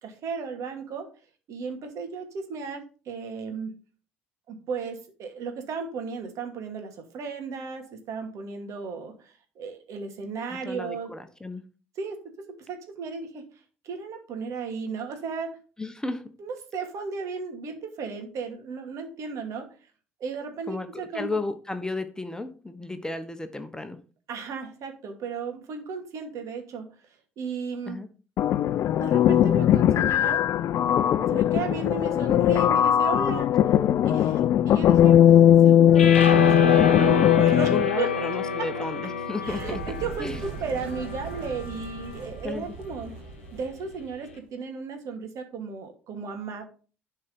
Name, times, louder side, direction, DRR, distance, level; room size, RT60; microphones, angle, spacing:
voice 1, 0.0-1.1 1.5-3.8 4.5-11.1 12.0-12.2 12.6-13.4 13.8-15.6 16.4-19.7 20.2-21.4 24.3-26.9 27.4-28.0 29.0-30.4 31.2-33.5 34.0-35.2 35.6-38.1 38.8-38.9 39.4-43.2 43.5-46.7, right 5 dB, 55° right, 5 dB, 2.4 m, -35 dB
voice 2, 10.5-11.6 15.8-16.2 20.7-24.0 27.9-28.1 37.4-39.8 40.2-40.4 42.4-42.7, left 2 dB, 10° left, 9 dB, 1.2 m, -33 dB
sound 1, 28.4-37.9, left 10 dB, 50° left, 0.5 m, -19 dB
sound 2, 35.9-42.2, left 6 dB, 85° left, 1.0 m, -28 dB
sound 3, 39.4-44.3, right 4 dB, 75° right, 2.3 m, -40 dB
11.5 x 4.5 x 5.4 m, 0.37 s
figure-of-eight pair, 55°, 6 cm